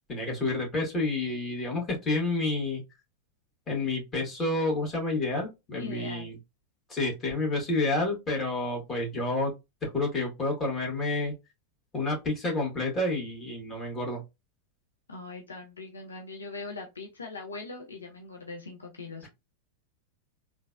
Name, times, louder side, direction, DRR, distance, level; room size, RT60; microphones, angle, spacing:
voice 1, 0.1-2.8 3.7-6.4 6.9-9.5 9.8-11.3 11.9-14.2, left 2 dB, 25° left, 1.7 m, -29 dB
voice 2, 5.8-6.3 15.1-19.3, left 3 dB, 75° left, 0.6 m, -41 dB
3.8 x 2.4 x 2.5 m
figure-of-eight pair, 90°, 0 cm